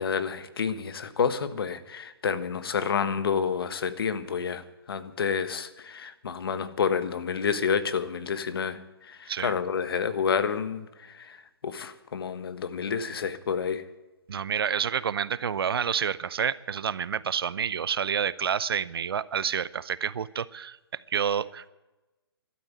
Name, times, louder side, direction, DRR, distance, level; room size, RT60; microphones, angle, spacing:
voice 1, 0.0-4.6 4.9-8.8 9.1-10.9 11.6-13.8, left 6 dB, 65° left, 12 dB, 1.4 m, -29 dB
voice 2, 14.3-20.8 21.1-21.7, right 7 dB, 70° right, 19 dB, 0.7 m, -29 dB
12.5 x 10.5 x 9.9 m, 1.1 s
hypercardioid pair, 140°, 13 cm